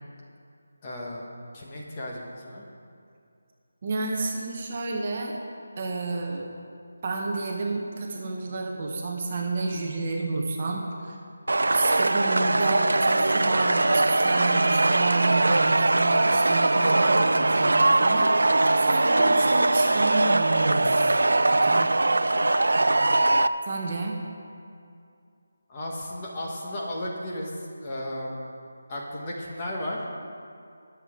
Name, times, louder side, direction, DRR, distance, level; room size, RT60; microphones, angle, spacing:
voice 1, 0.8-1.3 1.5-2.6 25.7-28.4 28.9-30.1, left 1 dB, 15° left, -3 dB, 1.3 m, -34 dB
voice 2, 3.8-5.4 5.8-6.5 7.0-11.2 11.7-21.1 21.5-21.9 23.7-24.2, right 3 dB, 25° right, 0 dB, 0.9 m, -30 dB
Concert cheer, 11.5-23.5, right 2 dB, 90° right, 0.4 m, -21 dB
21.5 x 7.2 x 3.7 m, 2.4 s
figure-of-eight pair, 175°, 0 cm